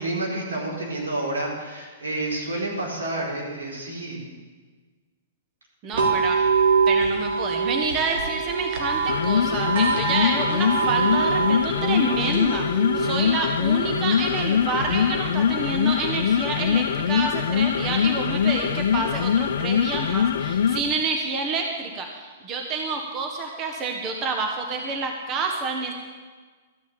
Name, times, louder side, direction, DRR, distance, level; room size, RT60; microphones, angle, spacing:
voice 1, 0.0-4.2, right 2 dB, 90° right, -4 dB, 4.6 m, -29 dB
voice 2, 5.8-6.4 6.9-25.9, right 4 dB, 30° right, 3 dB, 1.3 m, -28 dB
sound 1, 5.9-19.9, right 5 dB, 70° right, 2.8 m, -27 dB
sound 2, 8.9-20.9, left 8 dB, 70° left, 0.6 m, -23 dB
13.0 x 6.3 x 8.8 m, 1.4 s
hypercardioid pair, 120°, 0 cm